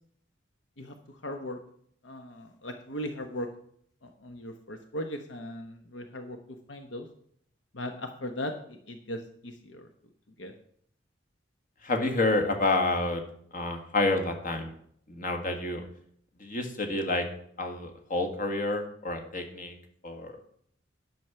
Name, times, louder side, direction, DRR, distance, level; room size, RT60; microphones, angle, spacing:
voice 1, 0.8-1.6 2.0-3.5 4.0-6.4 6.7-7.1 7.7-9.9 10.4-10.5, left 1 dB, 75° left, 5 dB, 1.0 m, -38 dB
voice 2, 11.8-13.2 13.5-14.7 15.1-15.8 16.4-17.3 17.6-19.7 20.0-20.3, left 2 dB, 45° left, 5 dB, 1.7 m, -29 dB
10.5 x 6.2 x 6.9 m, 0.65 s
head